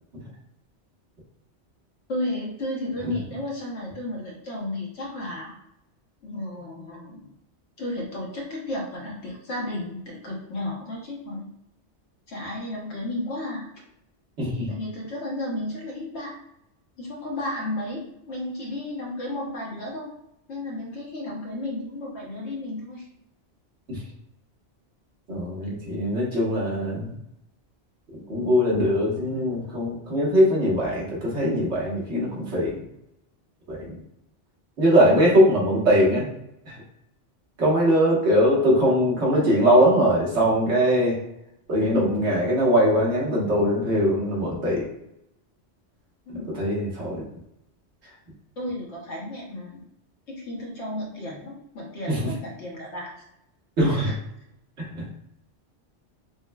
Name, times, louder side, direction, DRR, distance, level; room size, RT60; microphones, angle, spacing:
voice 1, 2.1-5.6 6.2-7.3 7.8-11.5 12.3-13.7 14.7-16.4 17.0-20.1 20.5-23.1 46.3-46.5 48.6-49.8 50.3-53.2 53.8-54.1, left 1 dB, 70° left, -2 dB, 1.2 m, -33 dB
voice 2, 14.4-14.7 23.9-24.0 25.3-27.1 28.3-32.8 33.7-34.0 34.8-36.3 36.7-36.8 37.6-41.2 41.7-44.8 46.3-47.2 52.1-52.2 53.8-54.1 54.8-55.1, equal, 70° right, -5 dB, 1.5 m, -21 dB
5.9 x 2.1 x 2.2 m, 0.80 s
omnidirectional pair, 1.2 m